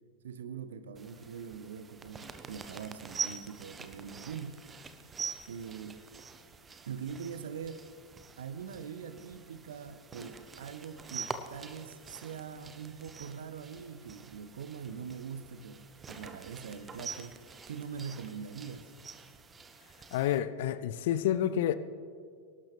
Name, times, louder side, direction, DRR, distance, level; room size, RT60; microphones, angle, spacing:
voice 1, 0.2-4.6 5.5-6.0 6.8-7.9 8.4-17.4 17.7-18.9, right 7 dB, 60° right, 0.9 m, -43 dB
sound 1, 0.9-20.4, right 5 dB, 20° right, 0.8 m, -45 dB
voice 2, 20.1-21.8, left 11 dB, 55° left, 0.5 m, -29 dB
24.0 x 12.0 x 3.4 m
figure-of-eight pair, 90°, 0 cm